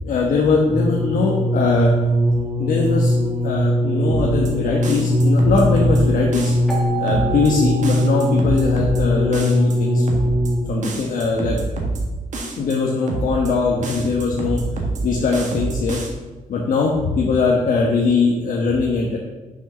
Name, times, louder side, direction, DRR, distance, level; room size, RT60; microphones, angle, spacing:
voice 1, 0.0-1.9 2.3-3.1 3.4-6.5 7.0-10.1 10.7-11.6 12.6-14.6 15.0-16.0 16.5-19.2, left 4 dB, 70° left, -1 dB, 1.2 m, -21 dB
sound 1, 0.7-10.8 11.6-11.7, left 1 dB, 25° right, 2.1 m, -20 dB
sound 2, 4.1-4.5 4.8-6.0 6.3-6.7 7.1-7.5 7.8-9.0 9.3-9.7 10.1-10.5 10.8-12.0 12.3-12.7 13.1-13.5 13.8-15.0 15.3-16.1, right 3 dB, 60° right, 1.6 m, -27 dB
Keyboard (musical), 6.7-9.3, right 7 dB, ahead, 1.9 m, -31 dB
6.4 x 6.3 x 6.0 m, 1.2 s
wide cardioid pair, 180°, 14 cm